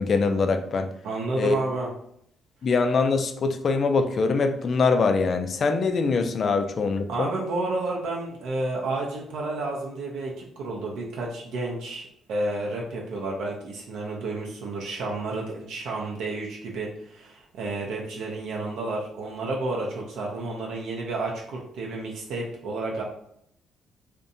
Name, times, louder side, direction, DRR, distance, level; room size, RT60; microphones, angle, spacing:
voice 1, 0.0-0.9 1.4-1.6 2.6-7.3, left 4 dB, 50° left, 7 dB, 0.3 m, -23 dB
voice 2, 1.0-1.9 7.1-23.0, right 2 dB, 80° right, -1 dB, 0.4 m, -31 dB
2.6 x 2.1 x 2.6 m, 0.72 s
cardioid pair, 90°, 0 cm